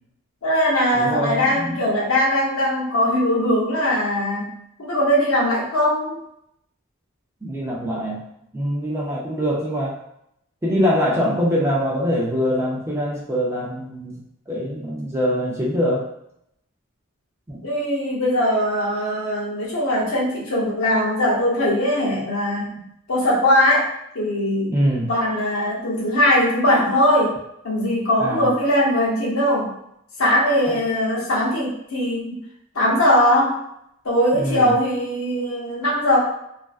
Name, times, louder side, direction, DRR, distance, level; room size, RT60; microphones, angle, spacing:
voice 1, 0.4-6.2 17.6-22.8 23.1-23.9 24.1-24.7 25.1-27.4 27.6-29.7 30.2-32.4 32.7-33.6 34.0-36.2, left 1 dB, 70° left, -4 dB, 0.7 m, -20 dB
voice 2, 0.9-1.8 7.4-8.3 8.5-10.0 10.6-14.2 14.5-16.1 17.5-17.7 24.7-25.1 28.2-28.5 30.7-30.8 34.3-34.7, equal, 10° right, -5 dB, 0.4 m, -23 dB
2.4 x 2.2 x 2.3 m, 0.75 s
head